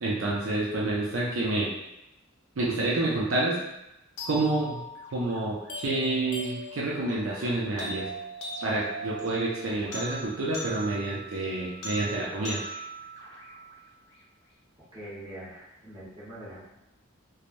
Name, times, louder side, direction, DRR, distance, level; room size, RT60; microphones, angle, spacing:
voice 1, 0.0-1.7 2.6-3.6 4.2-4.8 5.1-8.1 8.6-12.6, right 2 dB, 65° right, -5 dB, 0.5 m, -28 dB
sound 1, 4.2-14.2, right 1 dB, 55° left, 0.5 m, -40 dB
voice 2, 14.9-16.7, right 1 dB, 20° right, -11 dB, 1.2 m, -43 dB
3.2 x 2.0 x 2.5 m, 0.90 s
head